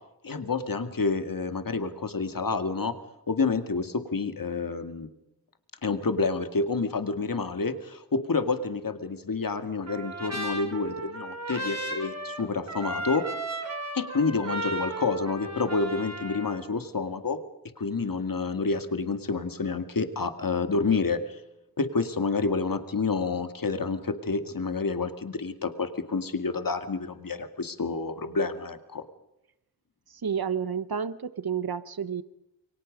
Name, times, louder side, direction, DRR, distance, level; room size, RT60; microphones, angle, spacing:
voice 1, 0.2-2.9 3.3-5.1 5.8-13.2 13.9-17.4 17.8-21.4 21.8-29.0, left 4 dB, 65° left, 9 dB, 2.2 m, -29 dB
Trumpet, 9.9-16.6, right 1 dB, 45° right, 4.7 m, -35 dB
voice 2, 30.2-32.2, right 7 dB, 85° right, 15 dB, 1.2 m, -30 dB
28.5 x 24.0 x 5.2 m, 0.88 s
wide cardioid pair, 90°, 36 cm